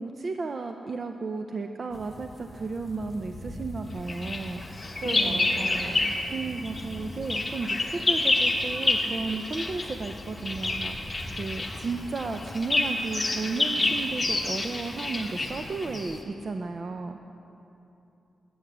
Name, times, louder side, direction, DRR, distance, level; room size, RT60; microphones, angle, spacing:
voice 1, 0.0-4.8 5.1-5.5 6.3-17.2, right 4 dB, 45° right, 6 dB, 0.5 m, -34 dB
sound 1, 1.9-16.2, left 1 dB, ahead, 1.1 m, -43 dB
Bird vocalization bird call bird song, 4.1-6.3 6.6-16.2, left 2 dB, 25° left, 1.1 m, -28 dB
voice 2, 5.0-6.1, right 2 dB, 80° right, 2 dB, 1.4 m, -35 dB
11.0 x 8.6 x 6.8 m, 2.9 s
cardioid pair, 100°, 0 cm